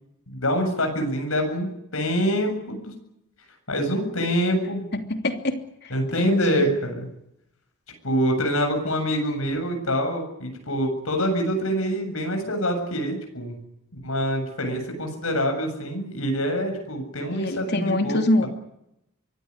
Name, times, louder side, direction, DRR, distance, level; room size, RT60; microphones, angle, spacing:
voice 1, 0.3-2.9 3.7-4.8 5.9-7.1 8.0-13.6 14.0-18.5, equal, 70° left, 4 dB, 7.7 m, -25 dB
voice 2, 4.9-6.7 17.3-18.5, left 2 dB, 50° left, 6 dB, 2.9 m, -25 dB
24.0 x 17.5 x 9.8 m, 0.80 s
head